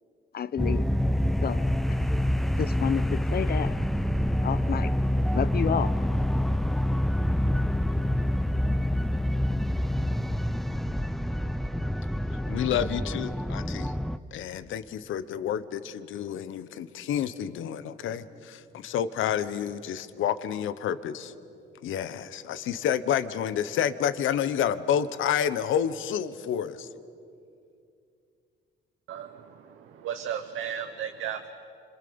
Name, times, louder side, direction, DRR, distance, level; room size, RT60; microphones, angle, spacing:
voice 1, 0.3-0.8 1.4-1.6 2.6-3.7 4.4-4.9 5.3-5.9, left 8 dB, 50° left, 15 dB, 0.9 m, -29 dB
sound 1, 0.6-14.2, left 1 dB, ahead, 0.7 m, -27 dB
voice 2, 12.5-13.9 14.3-21.3 21.8-26.9, left 9 dB, 80° left, 13 dB, 1.1 m, -29 dB
voice 3, 29.1-31.5, right 9 dB, 85° right, 6 dB, 1.2 m, -35 dB
28.0 x 26.0 x 7.0 m, 2.4 s
cardioid pair, 90°, 20 cm